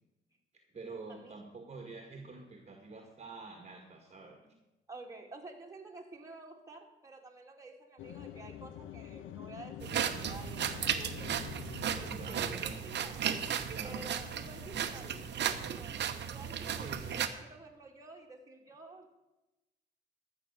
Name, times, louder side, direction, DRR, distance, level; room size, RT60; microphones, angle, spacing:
voice 1, 0.7-4.4 12.0-12.8 13.7-14.1 16.6-17.2, right 3 dB, 35° right, 3 dB, 1.8 m, -47 dB
voice 2, 4.9-11.3 12.0-19.2, right 3 dB, 15° right, 1 dB, 2.4 m, -50 dB
sound 1, 8.0-15.1, left 10 dB, 75° left, 0.7 m, -48 dB
sound 2, 9.8-17.3, right 8 dB, 60° right, 1.0 m, -35 dB
13.5 x 6.2 x 8.1 m, 1.0 s
cardioid pair, 90°, 20 cm